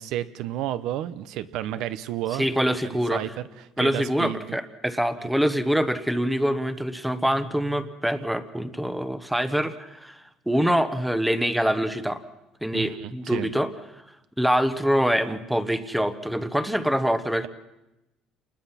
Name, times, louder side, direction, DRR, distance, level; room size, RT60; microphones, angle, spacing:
voice 1, 0.0-2.5 3.1-4.6 5.2-5.3 12.7-13.5, right 12 dB, 65° right, 13 dB, 0.9 m, -31 dB
voice 2, 2.4-3.2 3.8-10.2 10.5-12.2 12.6-13.7 14.4-17.5, equal, ahead, 11 dB, 1.0 m, -25 dB
29.0 x 20.5 x 5.9 m, 0.97 s
cardioid pair, 165°, 0 cm